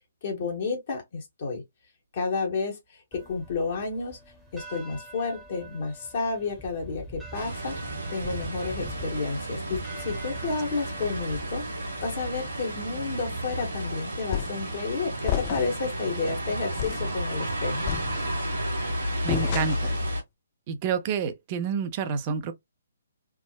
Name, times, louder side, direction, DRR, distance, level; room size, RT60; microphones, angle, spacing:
voice 1, 0.2-1.6 2.1-4.2 4.5-7.8 8.1-11.6 12.0-17.9, left 4 dB, 50° left, 1.1 m, -31 dB
sound 1, 3.1-13.0, right 2 dB, ahead, 0.9 m, -45 dB
sound 2, 7.3-20.2, right 1 dB, 75° right, 1.2 m, -32 dB
sound 3, 14.3-14.7 15.3-15.9 16.3-16.4 16.8-17.1 17.9-18.5 19.3-20.0, left 12 dB, 35° left, 0.4 m, -31 dB
voice 2, 19.2-19.9 20.7-22.5, right 6 dB, 35° right, 0.6 m, -29 dB
3.5 x 2.0 x 2.3 m
figure-of-eight pair, 130°, 0 cm